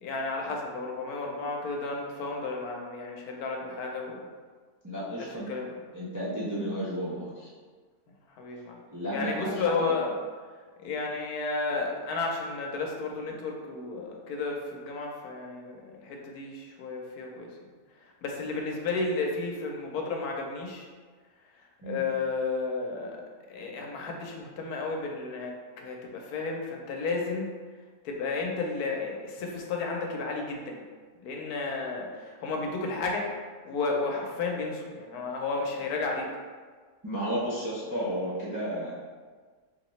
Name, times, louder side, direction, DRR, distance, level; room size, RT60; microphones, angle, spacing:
voice 1, 0.0-4.2 5.2-5.8 8.4-8.8 9.1-10.1 10.8-17.5 18.2-20.9 21.8-23.2 23.5-27.5 28.0-30.8 31.2-33.3 33.6-36.3, left 3 dB, 90° left, 1 dB, 1.1 m, -32 dB
voice 2, 4.8-5.5 5.9-7.5 8.9-9.9 21.8-22.0 37.0-38.9, equal, 25° right, -9 dB, 0.4 m, -33 dB
4.0 x 2.9 x 3.1 m, 1.5 s
omnidirectional pair, 1.6 m